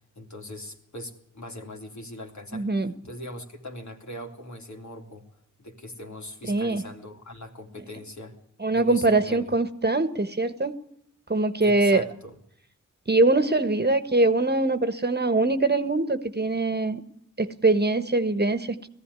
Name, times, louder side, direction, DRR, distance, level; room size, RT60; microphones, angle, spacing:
voice 1, 0.1-2.7 3.0-5.3 5.6-8.4 8.7-9.5 11.6-12.4, left 1 dB, 60° left, 2 dB, 3.3 m, -41 dB
voice 2, 2.5-2.9 6.5-6.8 8.6-10.7 11.3-12.0 13.1-17.0 17.4-18.9, right 2 dB, 30° right, 10 dB, 1.5 m, -23 dB
18.5 x 15.0 x 9.8 m, 0.69 s
cardioid pair, 50°, 33 cm